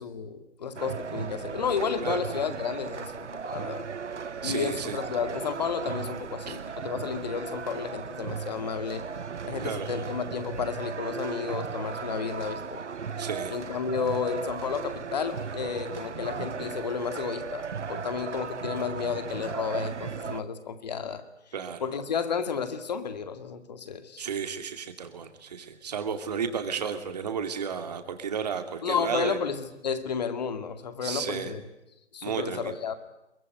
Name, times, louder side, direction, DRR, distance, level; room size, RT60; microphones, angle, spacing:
voice 1, 0.0-3.9 4.4-9.0 9.5-12.8 13.5-21.2 21.8-24.2 28.8-31.6 32.1-32.9, left 6 dB, 35° left, 10 dB, 2.2 m, -32 dB
sound 1, 0.8-20.4, right 6 dB, 80° right, 0.8 m, -36 dB
voice 2, 4.4-5.0 6.5-6.6 9.6-9.9 13.2-13.5 21.5-21.9 24.2-29.4 31.0-31.5 32.2-32.8, right 7 dB, 35° right, 8 dB, 2.6 m, -33 dB
23.0 x 21.0 x 9.5 m, 0.90 s
figure-of-eight pair, 155°, 35 cm